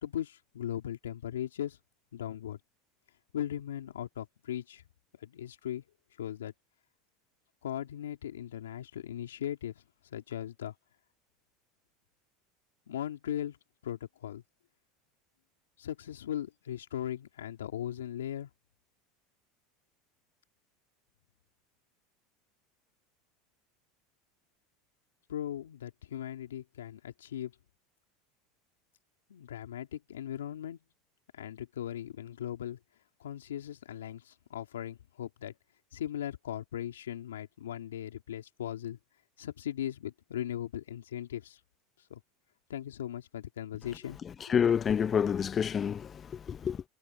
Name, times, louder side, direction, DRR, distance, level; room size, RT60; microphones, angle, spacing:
voice 1, 0.0-1.8 2.1-2.6 3.3-4.8 5.2-5.8 6.2-6.5 7.6-9.7 10.1-10.7 12.9-13.6 13.8-14.4 15.8-18.5 25.3-27.5 29.3-30.8 31.3-32.8 33.2-35.5 35.9-39.0 39.4-41.6 42.1-42.2 42.7-44.2, left 11 dB, 85° left, 3.0 m, -38 dB
voice 2, 44.2-46.8, left 7 dB, 30° left, 0.9 m, -29 dB
hypercardioid pair, 90°, 0 cm